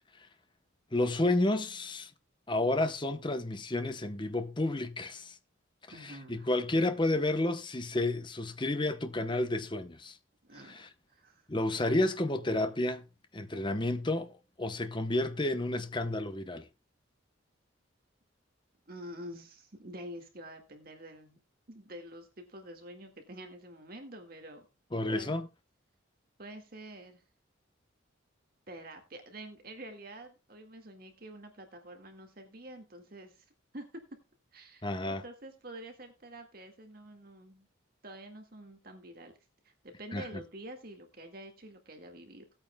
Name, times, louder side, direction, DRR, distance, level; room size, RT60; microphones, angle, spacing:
voice 1, 0.9-2.1 2.5-5.4 6.0-10.2 10.6-10.9 11.5-13.1 13.3-16.7 24.9-25.5 34.8-35.2 40.1-40.4, left 2 dB, 25° left, 0.8 m, -31 dB
voice 2, 5.9-6.5 10.4-10.8 11.1-11.5 18.9-21.4 21.7-24.6 25.1-25.4 26.4-27.2 28.7-33.4 33.7-34.0 34.5-37.7 38.0-39.3 39.6-42.4, right 1 dB, 45° right, 1.8 m, -47 dB
18.0 x 8.8 x 2.2 m
head